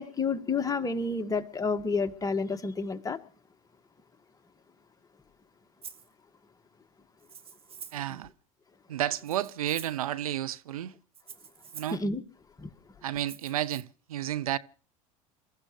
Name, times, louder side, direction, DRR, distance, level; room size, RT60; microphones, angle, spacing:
voice 1, 0.0-3.2 11.9-12.2 12.6-12.7, left 4 dB, 20° left, 2.0 m, -30 dB
Rattle (instrument), 5.8-6.1 7.2-8.1 9.1-10.1 11.1-12.0 13.2-13.8, right 7 dB, 30° right, 1.8 m, -47 dB
voice 2, 7.9-8.3 8.9-10.9 11.7-12.0 13.0-14.6, right 12 dB, 85° right, 0.7 m, -31 dB
28.5 x 15.0 x 3.3 m
hypercardioid pair, 80°, 18 cm